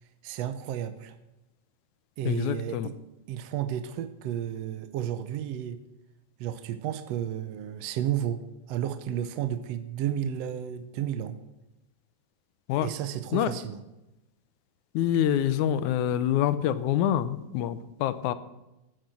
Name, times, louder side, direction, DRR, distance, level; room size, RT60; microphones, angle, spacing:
voice 1, 0.2-1.1 2.2-2.9 3.3-5.8 6.4-8.4 8.7-11.4 12.8-13.8, right 10 dB, 70° right, 9 dB, 1.7 m, -32 dB
voice 2, 2.3-2.9 12.7-12.9 13.3-13.5 14.9-18.3, left 10 dB, 80° left, 13 dB, 2.2 m, -26 dB
14.5 x 9.4 x 7.6 m, 0.97 s
omnidirectional pair, 3.4 m